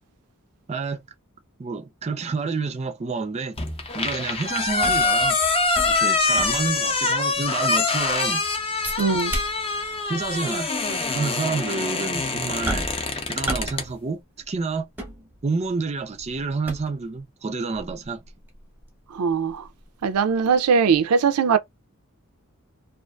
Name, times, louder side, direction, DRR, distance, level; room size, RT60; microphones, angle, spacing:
voice 1, 0.7-1.0 1.6-3.6 3.9-5.4 5.9-8.4 10.1-12.9 13.3-14.9 15.4-18.2, right 4 dB, 30° right, 0.4 m, -29 dB
sound 1, 3.6-13.9, left 3 dB, 25° left, 0.6 m, -24 dB
sound 2, 4.6-6.9 7.3-7.4 7.8-8.2 8.8-9.9 10.2-10.4 11.1-11.2 12.7-13.1 13.5-13.8 14.1-15.7 16.2-17.1 17.7-20.5 20.9-21.0, right 1 dB, 10° right, 0.8 m, -34 dB
voice 2, 9.0-9.3 19.1-19.7 20.0-21.6, right 6 dB, 90° right, 0.4 m, -20 dB
2.5 x 2.4 x 2.2 m
head